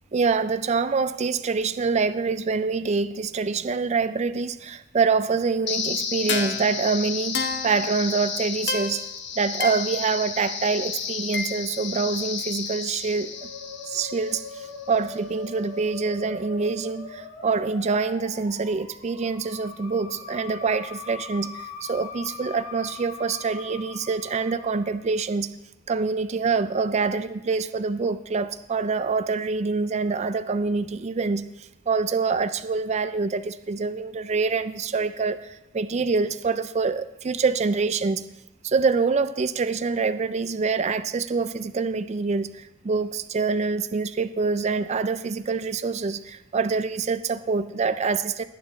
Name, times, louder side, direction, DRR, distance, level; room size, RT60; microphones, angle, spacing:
voice 1, 0.1-9.1 9.4-13.3 13.9-25.5 25.9-38.3 38.6-48.4, right 4 dB, 35° right, 12 dB, 0.3 m, -25 dB
sound 1, 5.7-14.7, left 6 dB, 55° left, 1.2 m, -31 dB
Musical instrument, 13.3-25.1, left 4 dB, 85° left, 2.8 m, -41 dB
19.5 x 9.5 x 3.1 m, 0.94 s
head